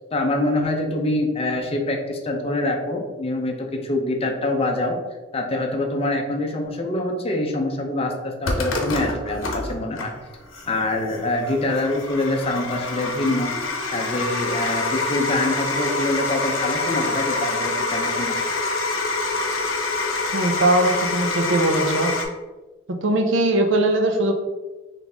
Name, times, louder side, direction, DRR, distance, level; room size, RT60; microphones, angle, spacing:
voice 1, 0.1-5.0 5.3-10.1 10.7-13.5 13.9-18.4, left 2 dB, 30° left, 3 dB, 0.6 m, -25 dB
sound 1, 8.4-22.3, left 3 dB, 80° left, 0.8 m, -26 dB
voice 2, 20.3-22.1 22.9-24.3, right 2 dB, 70° right, 4 dB, 0.6 m, -20 dB
4.0 x 3.2 x 3.5 m, 1.2 s
head